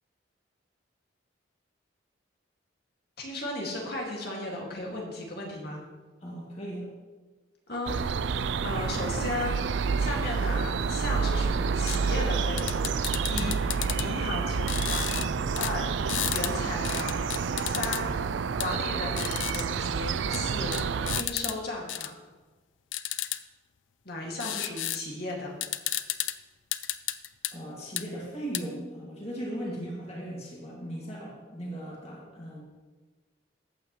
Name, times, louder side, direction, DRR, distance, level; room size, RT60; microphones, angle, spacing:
voice 1, 3.2-5.8 7.7-8.0 8.6-13.6 14.0-15.1 15.6-15.9 16.3-17.2 17.6-18.1 18.6-22.1 24.0-25.5 29.6-29.9, left 2 dB, 55° left, -1 dB, 2.3 m, -35 dB
voice 2, 6.2-6.9 13.4-13.6 27.5-32.6, right 1 dB, 35° left, -4 dB, 2.3 m, -38 dB
sound 1, 7.9-21.2, right 5 dB, 70° right, 0.4 m, -29 dB
sound 2, 11.9-12.0 12.6-14.1 14.7-15.3 15.6-15.7 16.1-16.5 16.8-18.0 18.6-18.7 19.2-19.6 20.3-20.4 20.7-21.5 21.9-22.1 22.9-23.4 24.4-25.0 25.3-25.4 25.6-26.3 26.7-27.5 28.0-28.1 28.5-28.6, left 14 dB, 85° left, 0.5 m, -32 dB
14.5 x 8.7 x 3.2 m, 1.3 s
head